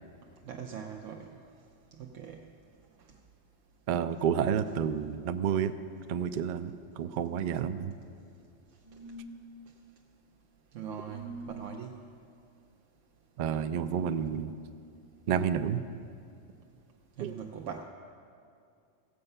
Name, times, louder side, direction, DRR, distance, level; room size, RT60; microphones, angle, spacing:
voice 1, 0.5-1.3 2.0-2.4 10.7-11.9 17.2-17.8, right 7 dB, 80° right, 2 dB, 1.0 m, -41 dB
voice 2, 3.9-5.7 6.1-7.9 13.4-14.5 15.3-15.8 17.2-17.4, right 8 dB, 60° right, 10 dB, 0.5 m, -30 dB
sound 1, 8.8-9.5 11.0-11.7 13.8-14.4, right 1 dB, 70° left, 1.6 m, -44 dB
16.0 x 7.8 x 5.5 m, 2.4 s
omnidirectional pair, 1.3 m